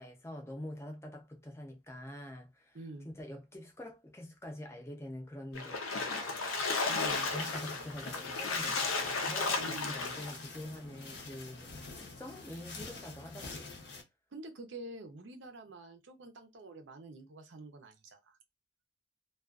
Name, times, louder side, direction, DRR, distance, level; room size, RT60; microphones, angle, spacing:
voice 1, 0.0-2.8 3.0-6.7 7.3-13.7, left 1 dB, 15° left, 0.5 m, -46 dB
voice 2, 2.7-3.1 6.9-7.3 9.6-9.9 14.3-18.4, right 2 dB, 60° right, 0.6 m, -47 dB
Splash splatter, 5.5-10.4, left 4 dB, 90° left, 0.6 m, -34 dB
sound 1, 7.1-14.0, left 3 dB, 55° left, 0.7 m, -47 dB
2.3 x 2.3 x 2.3 m
head